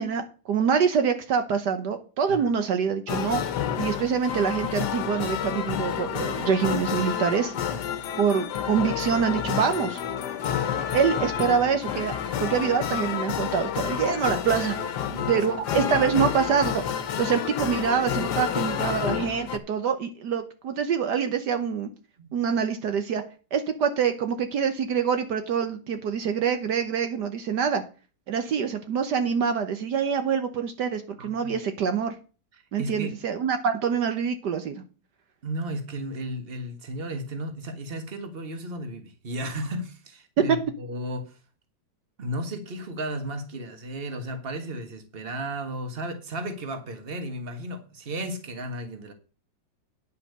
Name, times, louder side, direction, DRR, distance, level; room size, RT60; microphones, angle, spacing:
voice 1, 0.0-3.4 3.8-7.5 8.2-10.0 10.9-12.1 12.4-14.8 15.3-16.8 17.2-21.9 22.3-23.2 23.5-27.8 28.3-32.2 32.7-34.8, right 7 dB, 70° right, 1.5 m, -25 dB
sound 1, 3.1-19.6, left 9 dB, 70° left, 1.5 m, -29 dB
voice 2, 14.8-15.5 22.2-22.4 31.2-31.6 32.5-33.1 35.4-41.4 42.2-49.1, right 1 dB, 35° right, 1.7 m, -34 dB
9.9 x 5.7 x 6.6 m
omnidirectional pair, 1.9 m